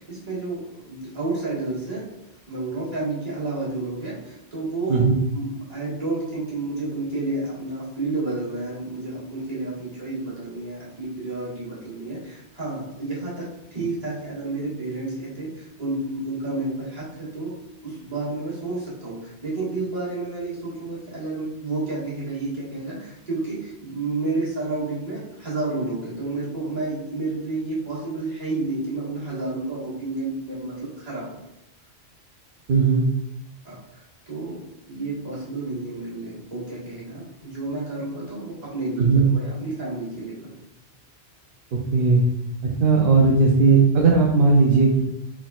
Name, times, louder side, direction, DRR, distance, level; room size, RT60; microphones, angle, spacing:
voice 1, 0.0-2.1 2.5-13.5 13.7-17.5 17.8-31.3 33.6-34.6 34.9-40.5, right 2 dB, 35° right, -9 dB, 1.7 m, -30 dB
voice 2, 32.7-33.0 39.0-39.3 41.9-42.2 42.8-45.0, right 4 dB, 60° right, -1 dB, 0.7 m, -17 dB
4.0 x 3.6 x 2.4 m, 0.87 s
omnidirectional pair, 1.1 m